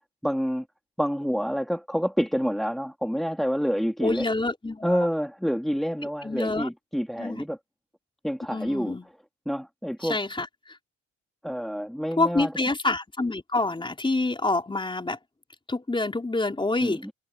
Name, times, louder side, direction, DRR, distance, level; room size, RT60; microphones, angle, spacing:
voice 1, 0.2-0.7 1.0-4.2 4.8-7.6 8.2-8.9 9.5-10.2 11.4-12.5 16.8-17.1, equal, ahead, 2.3 m, -28 dB
voice 2, 4.0-5.0 6.2-6.7 7.2-7.4 8.5-9.1 10.0-10.8 12.2-15.2 15.7-17.0, left 2 dB, 15° left, 4.3 m, -27 dB
cardioid pair, 90°, 30 cm